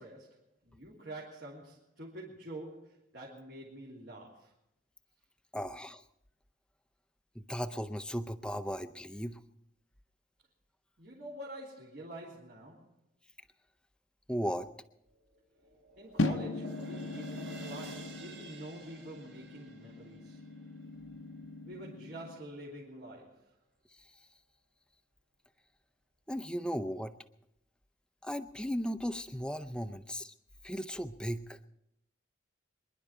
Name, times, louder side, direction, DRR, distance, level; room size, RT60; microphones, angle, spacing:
voice 1, 0.0-4.5 11.0-12.9 16.0-20.4 21.6-23.6, right 1 dB, 60° right, -6 dB, 3.3 m, -47 dB
voice 2, 5.5-6.0 7.5-9.4 14.3-14.7 26.3-27.1 28.2-30.3 30.6-31.6, equal, 5° left, 10 dB, 0.5 m, -36 dB
sound 1, 15.1-21.4, right 3 dB, 75° right, 5.4 m, -52 dB
sound 2, 16.2-22.4, left 2 dB, 85° left, 0.9 m, -39 dB
25.5 x 11.0 x 4.4 m, 0.80 s
head